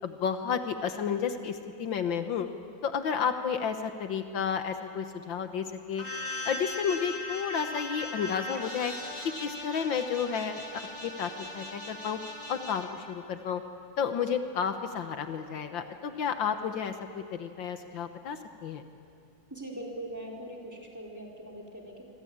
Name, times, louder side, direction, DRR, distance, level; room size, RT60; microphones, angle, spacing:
voice 1, 0.0-2.5 2.8-6.1 6.5-8.9 9.4-12.2 12.5-13.6 14.0-18.8, left 7 dB, 75° left, 8 dB, 1.9 m, -32 dB
sound 1, 6.0-12.9, left 2 dB, 20° left, 3.0 m, -39 dB
voice 2, 19.5-22.0, right 1 dB, 10° right, -1 dB, 4.2 m, -41 dB
27.0 x 24.0 x 8.8 m, 2.5 s
omnidirectional pair, 2.1 m